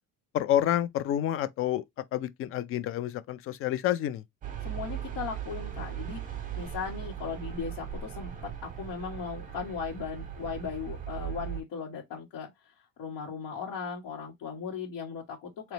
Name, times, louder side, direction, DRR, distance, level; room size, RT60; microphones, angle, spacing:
voice 1, 0.3-1.8 2.1-4.2, left 12 dB, 40° left, 0.5 m, -28 dB
sound 1, 4.4-11.6, right 10 dB, 25° right, 0.9 m, -38 dB
voice 2, 4.6-6.2 6.5-12.5 13.0-15.7, left 6 dB, 80° left, 1.7 m, -37 dB
4.0 x 2.9 x 3.2 m
cardioid pair, 170°, 33 cm